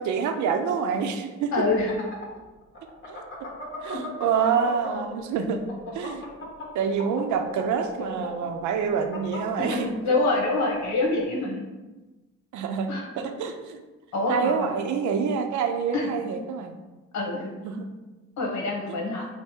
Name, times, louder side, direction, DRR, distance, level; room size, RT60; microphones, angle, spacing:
voice 1, 0.0-1.5 3.1-3.2 3.8-5.6 5.9-6.2 6.7-9.9 12.5-13.8 14.3-16.8 17.6-17.9 18.9-19.0, right 6 dB, 70° right, 6 dB, 0.6 m, -27 dB
voice 2, 1.5-1.9 3.9-4.0 9.6-9.8 10.0-11.6 12.9-13.0 14.1-14.7 15.9-16.3 17.1-17.5 18.4-19.3, left 2 dB, 65° left, 0 dB, 1.1 m, -26 dB
sound 1, 1.6-5.2 5.5-10.9, left 1 dB, 40° left, 1.3 m, -37 dB
4.5 x 2.1 x 4.3 m, 1.2 s
cardioid pair, 90°, 30 cm